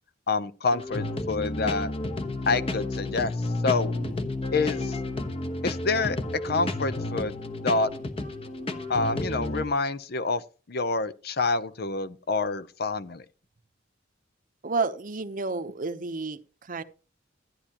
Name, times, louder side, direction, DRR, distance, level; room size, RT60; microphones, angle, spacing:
voice 1, 0.3-1.9 2.5-3.3 3.6-3.9 4.5-5.0 5.6-6.2 6.4-7.9 8.9-10.4 10.7-13.2, left 3 dB, 55° left, 0.7 m, -27 dB
sound 1, 0.7-9.6, left 2 dB, 30° left, 1.1 m, -31 dB
voice 2, 14.6-16.8, right 4 dB, 45° right, 0.8 m, -31 dB
13.5 x 9.8 x 3.0 m
head